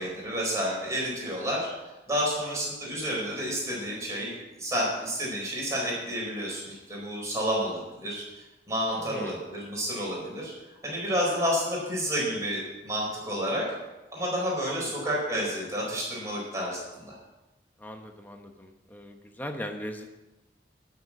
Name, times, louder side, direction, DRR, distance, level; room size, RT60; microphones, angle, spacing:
voice 1, 0.0-1.7 2.1-10.5 10.8-13.6 14.1-17.1, equal, 15° right, -5 dB, 4.5 m, -30 dB
voice 2, 9.0-9.4 14.7-14.9 17.8-20.2, equal, 10° left, 4 dB, 1.0 m, -39 dB
12.0 x 6.7 x 7.3 m, 1.0 s
head